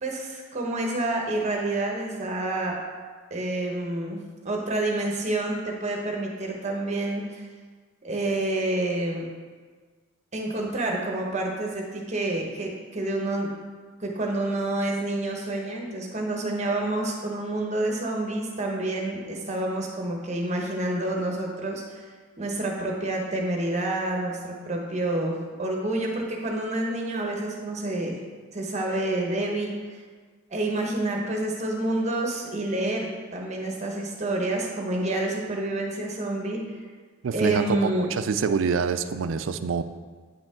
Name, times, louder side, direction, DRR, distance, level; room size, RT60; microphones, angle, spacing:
voice 1, 0.0-2.8 3.3-7.4 8.0-9.3 10.3-13.5 14.0-22.1 22.4-28.2 28.5-30.0 30.5-36.6 37.3-38.1, right 2 dB, 35° right, 0 dB, 1.1 m, -28 dB
voice 2, 37.2-39.8, right 5 dB, 75° right, 11 dB, 0.4 m, -26 dB
8.9 x 4.9 x 3.7 m, 1.5 s
head